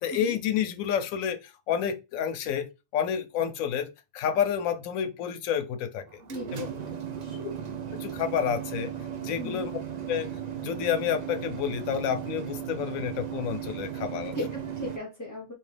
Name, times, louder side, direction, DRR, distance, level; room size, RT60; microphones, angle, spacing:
voice 1, 0.0-2.7 2.9-6.2 6.5-6.7 7.3-7.5 7.9-8.9 9.2-9.7 10.1-10.3 10.6-14.3, left 8 dB, 75° left, 1.0 m, -29 dB
sound 1, 6.1-15.0, right 9 dB, 60° right, 0.4 m, -36 dB
voice 2, 6.2-7.4 9.3-9.7 14.3-15.5, left 2 dB, 20° left, 0.6 m, -38 dB
4.1 x 3.0 x 3.3 m
omnidirectional pair, 1.4 m